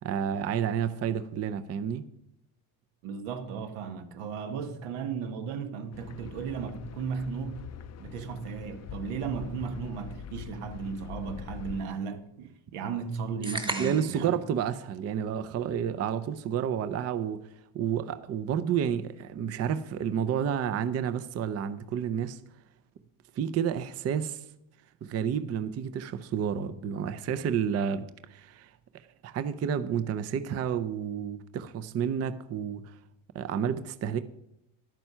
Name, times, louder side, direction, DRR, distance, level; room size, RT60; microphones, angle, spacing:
voice 1, 0.0-2.0 13.8-17.4 17.7-22.4 23.4-24.4 25.0-28.7 29.2-33.0 33.3-34.2, right 8 dB, 30° right, 0.5 m, -30 dB
voice 2, 3.0-7.6 8.0-14.3, right 6 dB, 85° right, 1.5 m, -35 dB
sound 1, 5.9-11.8, left 8 dB, 35° left, 0.5 m, -43 dB
sound 2, 13.4-14.3, right 2 dB, 10° right, 1.1 m, -34 dB
11.5 x 9.1 x 5.6 m
cardioid pair, 130°, 50 cm